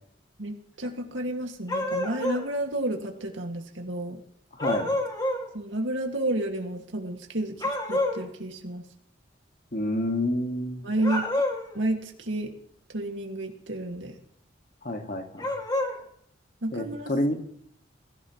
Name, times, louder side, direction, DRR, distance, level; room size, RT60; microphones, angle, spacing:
voice 1, 0.4-4.2 5.5-8.8 10.8-11.3 11.7-12.5 12.9-14.1 16.6-17.1, right 1 dB, 85° right, 3 dB, 2.1 m, -31 dB
sound 1, 1.7-2.5 4.6-5.5 7.6-8.2 11.0-11.7 15.4-16.0, left 1 dB, 20° left, 2.3 m, -28 dB
voice 2, 9.7-10.8 14.8-15.5 16.7-17.4, left 1 dB, 50° left, 4 dB, 1.9 m, -28 dB
22.0 x 15.5 x 3.2 m, 0.67 s
head